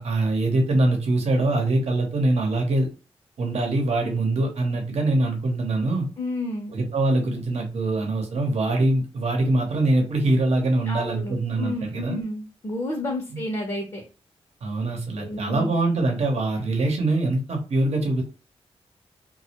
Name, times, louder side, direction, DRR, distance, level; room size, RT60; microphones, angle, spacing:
voice 1, 0.0-2.9 3.4-6.1 6.7-12.2 14.6-18.2, right 2 dB, 75° right, 2 dB, 0.8 m, -23 dB
voice 2, 6.2-6.7 10.9-14.0 15.2-15.7, left 1 dB, 35° left, 1 dB, 0.7 m, -31 dB
2.2 x 2.1 x 2.8 m, 0.33 s
cardioid pair, 65°, 11 cm